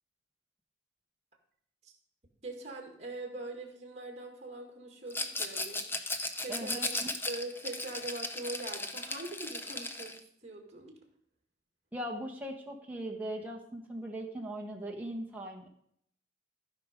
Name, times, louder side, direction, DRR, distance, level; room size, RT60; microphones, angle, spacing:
voice 1, 2.4-6.8 7.3-11.0, right 2 dB, 35° right, 2 dB, 2.0 m, -43 dB
Rattle, 5.1-10.2, left 2 dB, 10° left, 0.7 m, -36 dB
voice 2, 6.5-7.1 11.9-15.7, right 1 dB, 10° right, -1 dB, 1.4 m, -39 dB
15.0 x 5.3 x 5.2 m, 0.68 s
head